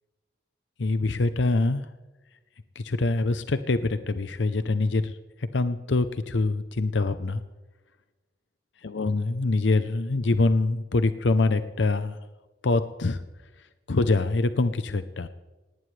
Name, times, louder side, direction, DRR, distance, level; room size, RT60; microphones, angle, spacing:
voice 1, 0.8-1.9 2.8-7.4 8.8-12.2 12.6-13.2 13.9-15.3, left 3 dB, 85° left, 11 dB, 0.7 m, -25 dB
19.0 x 17.5 x 3.3 m, 1.2 s
head